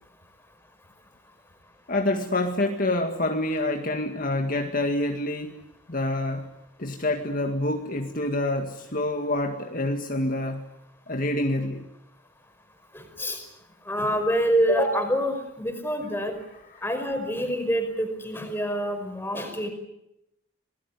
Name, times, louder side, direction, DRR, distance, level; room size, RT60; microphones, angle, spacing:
voice 1, 1.9-5.6 5.9-6.5 6.8-10.6 11.1-11.8, left 1 dB, 45° left, 4 dB, 2.0 m, -27 dB
voice 2, 12.9-13.4 13.9-16.4 16.8-19.7, equal, 10° left, 6 dB, 5.2 m, -26 dB
27.0 x 19.5 x 9.7 m, 0.85 s
head